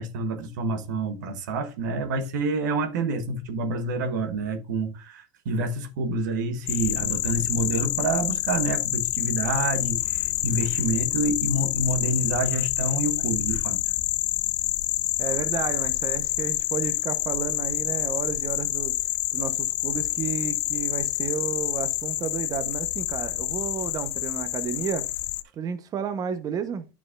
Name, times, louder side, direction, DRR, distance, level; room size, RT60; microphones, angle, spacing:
voice 1, 0.0-13.8, right 2 dB, 80° right, 1.3 m, -28 dB
sound 1, 6.7-25.4, left 17 dB, 70° left, 0.6 m, -27 dB
voice 2, 15.2-18.9 19.3-25.0 25.6-26.9, right 7 dB, 40° right, 1.0 m, -32 dB
10.0 x 6.0 x 2.5 m
supercardioid pair, 100°, 10 cm